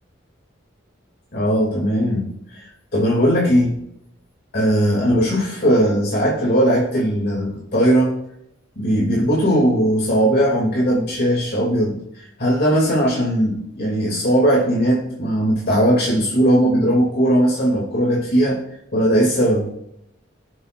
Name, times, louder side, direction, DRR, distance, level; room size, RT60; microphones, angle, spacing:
voice 1, 1.3-2.6 2.9-3.8 4.5-8.1 8.8-18.6 18.9-19.7, equal, 55° left, -4 dB, 2.8 m, -18 dB
19.5 x 8.1 x 2.6 m, 0.77 s
head